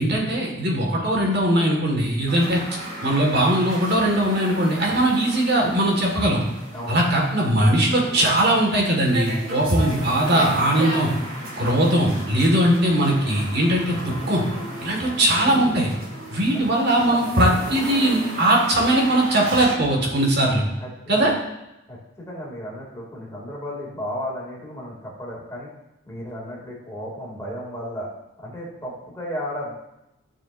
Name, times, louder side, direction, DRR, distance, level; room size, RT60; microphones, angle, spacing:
voice 1, 0.0-2.6 3.0-6.4 6.9-11.1 11.6-14.4 14.8-15.9 16.3-20.6 21.1-21.3, right 1 dB, 50° right, -1 dB, 1.7 m, -20 dB
sound 1, 2.3-19.7, right 1 dB, 75° right, 2.3 m, -34 dB
voice 2, 20.8-21.3 21.9-25.7 26.0-28.1 28.4-29.7, equal, 15° left, -4 dB, 2.4 m, -34 dB
13.0 x 7.1 x 2.6 m, 0.91 s
head